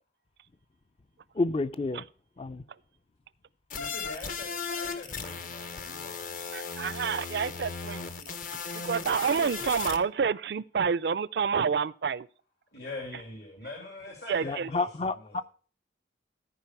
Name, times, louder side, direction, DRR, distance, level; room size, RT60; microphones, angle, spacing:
voice 1, 1.3-2.1 2.4-2.6 14.4-15.4, left 3 dB, 30° left, 0.4 m, -30 dB
voice 2, 3.7-6.5 12.7-15.4, left 2 dB, 65° left, 2.3 m, -43 dB
sound 1, 3.7-10.0, left 5 dB, 50° left, 0.8 m, -36 dB
voice 3, 6.5-12.3 14.3-14.7, right 6 dB, 65° right, 0.4 m, -29 dB
14.0 x 4.8 x 5.8 m
head